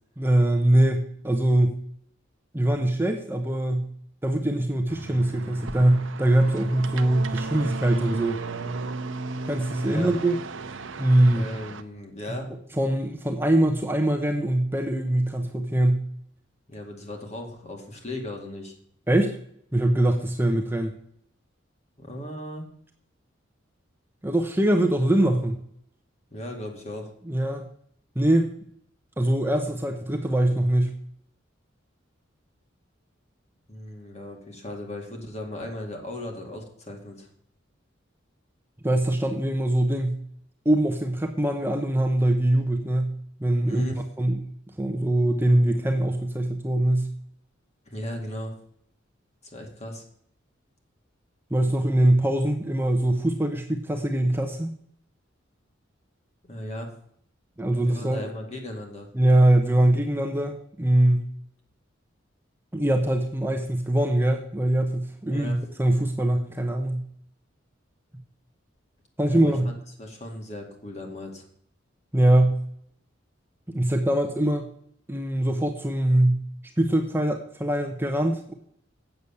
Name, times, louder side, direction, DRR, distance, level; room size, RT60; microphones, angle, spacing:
voice 1, 0.2-1.8 2.5-3.9 4.2-8.4 9.5-10.4 11.0-11.4 12.8-16.0 19.1-19.4 19.7-20.9 24.2-25.6 27.3-27.6 28.2-28.5 29.2-30.9 38.8-40.2 40.6-43.8 44.2-44.4 44.8-47.1 51.5-54.7 57.6-58.3 59.1-61.2 62.7-67.0 69.2-69.7 72.1-72.6 73.7-74.6 75.1-76.4 76.8-78.5, right 1 dB, 10° right, 3 dB, 0.8 m, -22 dB
sound 1, 4.9-11.8, right 3 dB, 70° right, 0.7 m, -36 dB
voice 2, 11.3-12.5 16.7-18.7 22.0-22.7 26.3-27.1 33.7-37.3 43.7-44.1 47.9-48.5 49.5-50.0 56.4-56.9 57.8-59.1 65.3-65.6 69.2-71.5, left 1 dB, 35° left, 2 dB, 2.3 m, -37 dB
8.1 x 7.0 x 7.0 m, 0.65 s
head